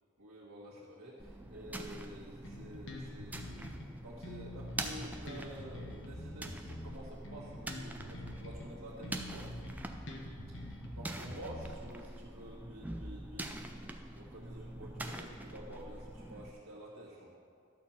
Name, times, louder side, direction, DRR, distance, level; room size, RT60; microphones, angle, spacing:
voice 1, 0.2-9.5 10.5-17.3, right 1 dB, 90° right, -10 dB, 1.8 m, -50 dB
sound 1, 1.2-16.5, right 1 dB, 5° right, 0.4 m, -45 dB
Bass guitar, 2.4-3.9 4.2-8.7 9.0-12.0, left 1 dB, 55° left, 1.1 m, -46 dB
12.0 x 4.4 x 7.3 m, 2.4 s
head